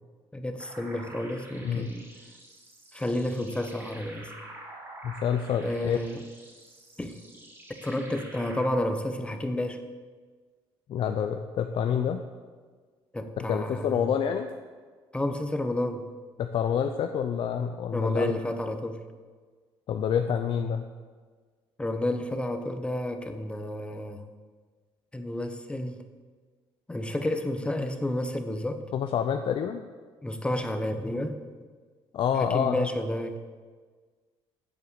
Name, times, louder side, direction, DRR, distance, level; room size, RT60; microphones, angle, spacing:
voice 1, 0.3-2.1 2.9-4.3 5.6-6.2 7.0-7.2 7.7-9.8 13.1-14.1 15.1-16.1 17.9-19.0 21.8-24.2 25.1-26.0 26.9-28.8 30.2-31.4 32.3-33.4, left 1 dB, 10° left, 7 dB, 0.8 m, -31 dB
sound 1, 0.6-8.7, right 1 dB, 25° right, 2.8 m, -48 dB
voice 2, 5.0-6.0 10.9-12.2 13.4-14.5 16.4-18.3 19.9-20.9 28.9-29.9 32.1-32.9, left 8 dB, 55° left, 6 dB, 0.5 m, -27 dB
7.8 x 7.4 x 6.8 m, 1.5 s
cardioid pair, 110°, 11 cm